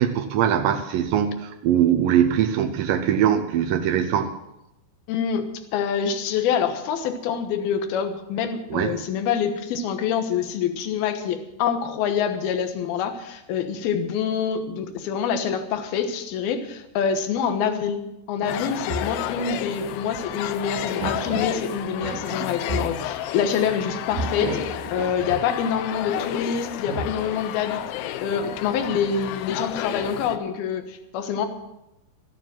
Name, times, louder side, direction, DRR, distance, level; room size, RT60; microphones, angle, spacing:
voice 1, 0.0-4.3 8.7-9.0, right 9 dB, 90° right, 6 dB, 1.9 m, -21 dB
voice 2, 5.1-5.5 5.7-18.0 18.3-27.8 28.2-31.5, left 7 dB, 70° left, 7 dB, 2.9 m, -26 dB
sound 1, 18.4-30.4, left 12 dB, 85° left, 2.2 m, -32 dB
sound 2, 18.6-19.2 20.2-20.3 21.0-21.6 22.0-23.1 24.1-25.6 26.7-27.5, right 4 dB, 70° right, 2.8 m, -33 dB
14.0 x 9.6 x 7.5 m, 0.90 s
omnidirectional pair, 5.0 m